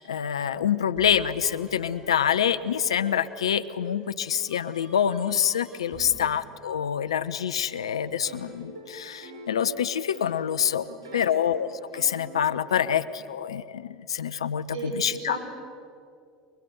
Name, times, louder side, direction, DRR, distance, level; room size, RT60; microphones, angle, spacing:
voice 1, 0.0-10.9 11.1-11.7 11.9-15.4, left 8 dB, 85° left, 15 dB, 0.8 m, -26 dB
sound 1, 0.9-6.2, right 1 dB, 25° right, 5.6 m, -50 dB
voice 2, 5.9-6.2 10.9-11.4 14.7-15.4, right 4 dB, 60° right, 2 dB, 7.1 m, -38 dB
sound 2, 7.7-12.8, right 1 dB, 90° right, 5.1 m, -44 dB
24.5 x 23.0 x 7.9 m, 2.4 s
hypercardioid pair, 80°, 3 cm